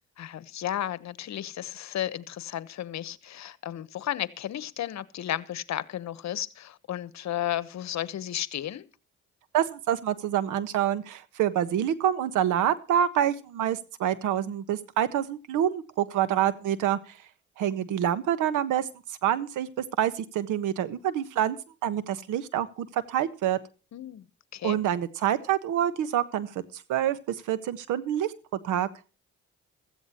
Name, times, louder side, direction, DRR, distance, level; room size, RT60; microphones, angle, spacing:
voice 1, 0.2-8.9 23.9-24.3 24.5-24.8, left 12 dB, 65° left, 1.1 m, -33 dB
voice 2, 9.5-17.1 17.6-18.9 19.2-19.7 20.0-21.6 21.8-23.6 24.6-28.3 28.6-28.9, right 10 dB, 90° right, 1.4 m, -27 dB
16.0 x 14.5 x 3.0 m
cardioid pair, 90°, 30 cm